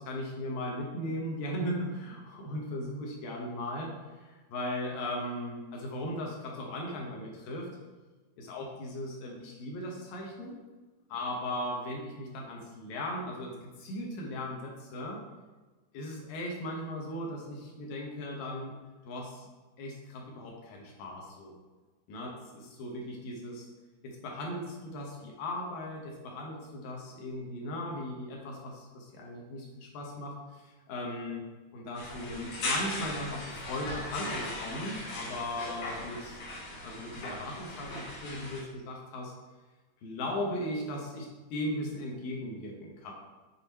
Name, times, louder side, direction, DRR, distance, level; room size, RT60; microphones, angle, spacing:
voice 1, 0.0-7.7 8.4-10.6 11.1-15.2 15.9-18.7 19.1-19.5 19.8-21.6 22.1-22.3 22.8-23.7 24.0-31.4 31.7-36.4 36.8-39.3 40.0-43.1, left 1 dB, 70° left, -1 dB, 2.7 m, -37 dB
sound 1, 31.9-38.6, left 2 dB, 55° left, 2.7 m, -38 dB
7.5 x 4.1 x 4.1 m, 1.3 s
omnidirectional pair, 4.4 m